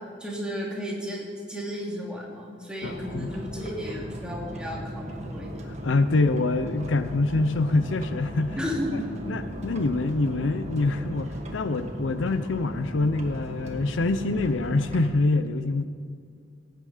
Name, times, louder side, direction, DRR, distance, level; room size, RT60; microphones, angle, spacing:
voice 1, 0.2-5.5 8.5-9.1, equal, 5° right, -4 dB, 2.7 m, -33 dB
voice 2, 2.8-3.3 5.8-8.6 8.9-9.0 9.3-15.8, left 3 dB, 90° left, 11 dB, 0.6 m, -25 dB
sound 1, 2.8-15.1, equal, 35° right, 1.6 m, -37 dB
17.5 x 9.1 x 5.0 m, 2.3 s
head